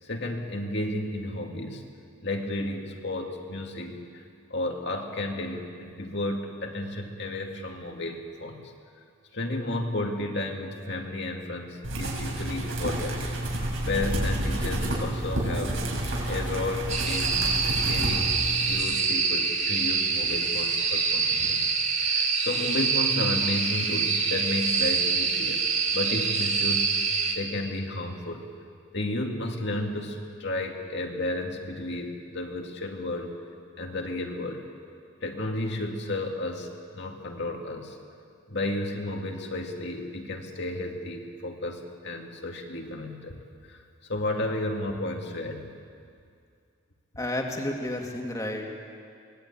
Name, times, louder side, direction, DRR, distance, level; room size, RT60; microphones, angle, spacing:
voice 1, 0.0-1.8 2.2-4.2 4.5-8.6 9.3-13.2 13.8-15.8 16.3-17.5 17.8-18.3 18.7-21.7 22.0-25.7 25.9-28.5 28.9-33.3 33.8-34.7 35.2-38.0 38.5-43.4 43.7-45.7, left 1 dB, 55° left, 2 dB, 2.4 m, -32 dB
sound 1, 11.8-18.8, right 1 dB, 75° right, 6.3 m, -29 dB
sound 2, 16.9-27.4, right 5 dB, 35° right, 1.9 m, -25 dB
voice 2, 47.2-48.6, left 1 dB, 15° left, 1 dB, 2.4 m, -31 dB
24.5 x 19.5 x 8.7 m, 2.3 s
head